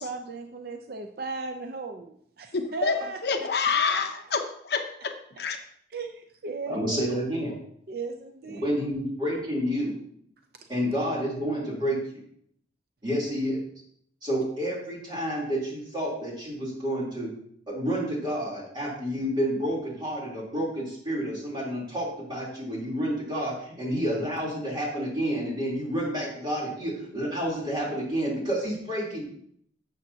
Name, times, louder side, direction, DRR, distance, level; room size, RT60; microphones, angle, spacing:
voice 1, 0.0-4.2 5.9-7.0 7.9-8.8, right 4 dB, 55° right, 6 dB, 0.5 m, -37 dB
voice 2, 2.5-5.6, left 5 dB, 60° left, 6 dB, 0.8 m, -28 dB
voice 3, 6.7-7.5 8.6-9.9 10.7-12.0 13.0-13.6 14.2-17.3 17.7-29.2, equal, 25° right, -5 dB, 3.3 m, -29 dB
12.0 x 7.3 x 2.8 m, 0.67 s
head